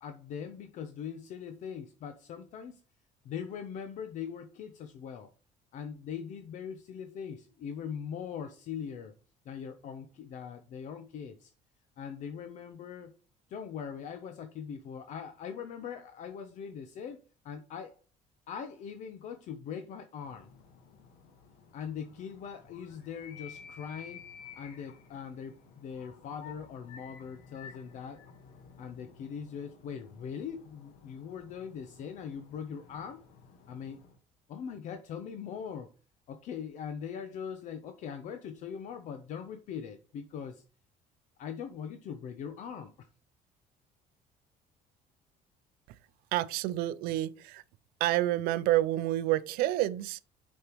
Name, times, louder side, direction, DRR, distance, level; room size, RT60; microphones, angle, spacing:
voice 1, 0.0-2.8 3.2-5.3 5.7-9.1 9.5-11.5 12.0-13.1 13.5-17.2 17.4-18.0 18.5-20.5 21.7-24.3 24.6-28.2 28.8-33.3 33.7-34.0 34.5-35.9 36.3-40.6 41.4-43.1, left 7 dB, 55° left, 0.6 m, -41 dB
sound 1, 20.2-34.2, left 6 dB, 85° left, 1.3 m, -53 dB
voice 2, 46.3-47.6 48.0-50.2, right 15 dB, 85° right, 0.4 m, -28 dB
6.6 x 5.3 x 3.0 m
cardioid pair, 155°, 15 cm